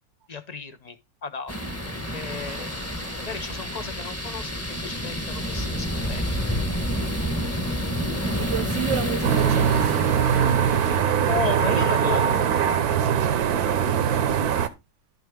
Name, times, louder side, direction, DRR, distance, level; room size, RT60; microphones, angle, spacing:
voice 1, 0.3-1.0 1.2-1.6 1.8-2.7 3.2-6.3 11.3-12.5, left 5 dB, 40° left, 0.6 m, -34 dB
sound 1, 1.5-11.0, equal, 10° left, 1.0 m, -29 dB
voice 2, 8.4-10.0 11.7-11.8 13.0-14.5, right 10 dB, 60° right, 0.9 m, -32 dB
sound 2, 9.2-14.7, right 8 dB, 85° right, 1.4 m, -22 dB
11.5 x 6.1 x 3.6 m
omnidirectional pair, 1.6 m